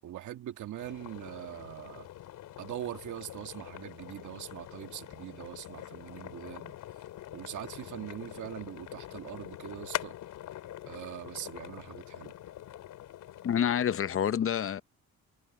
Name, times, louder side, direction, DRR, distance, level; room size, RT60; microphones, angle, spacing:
voice 1, 0.0-2.1 2.6-6.8 7.3-10.2 10.9-12.3, right 12 dB, 75° right, 1.8 m, -42 dB
sound 1, 0.8-14.2, left 13 dB, 80° left, 4.3 m, -44 dB
voice 2, 13.4-14.8, left 9 dB, 45° left, 0.7 m, -28 dB
cardioid pair, 90°, 30 cm